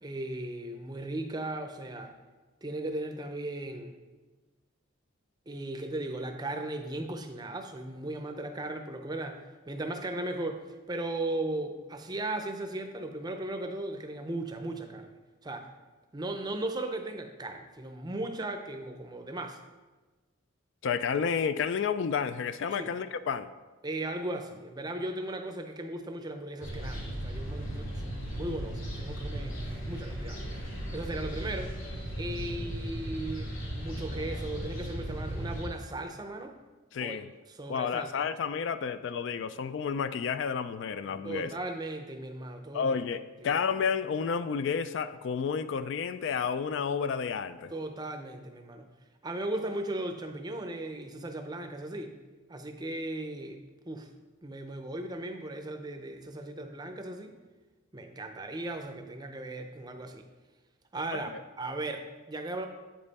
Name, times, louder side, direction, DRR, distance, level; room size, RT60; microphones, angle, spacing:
voice 1, 0.0-2.2 2.6-3.9 5.5-15.1 15.4-15.7 16.1-19.6 22.8-22.9 23.8-29.6 29.8-30.4 30.9-31.7 32.2-36.5 37.0-37.2 37.5-38.2 41.2-42.9 43.4-43.6 47.7-48.9 49.2-52.2 52.5-53.6 53.9-54.1 54.4-57.4 57.9-60.3 60.9-61.3 61.6-62.7, right 2 dB, 20° right, 6 dB, 0.5 m, -37 dB
voice 2, 20.8-23.5 36.9-37.3 37.7-41.5 42.7-47.7 61.1-61.4, left 6 dB, 60° left, 12 dB, 0.3 m, -31 dB
sound 1, 26.6-35.7, right 1 dB, 75° left, 2.1 m, -36 dB
8.8 x 5.4 x 4.1 m, 1.3 s
head